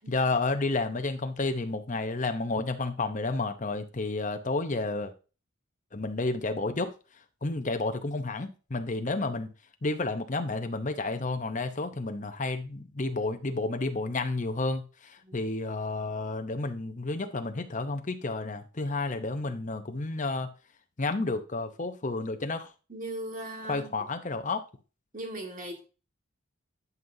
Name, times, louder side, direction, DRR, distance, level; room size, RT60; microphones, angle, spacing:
voice 1, 0.0-5.1 5.9-6.9 7.4-9.5 9.8-20.5 21.0-22.7 23.7-24.6, left 3 dB, 35° left, 0.7 m, -31 dB
voice 2, 22.9-24.0 25.1-25.8, right 1 dB, 40° right, 1.7 m, -38 dB
11.0 x 5.5 x 2.7 m
head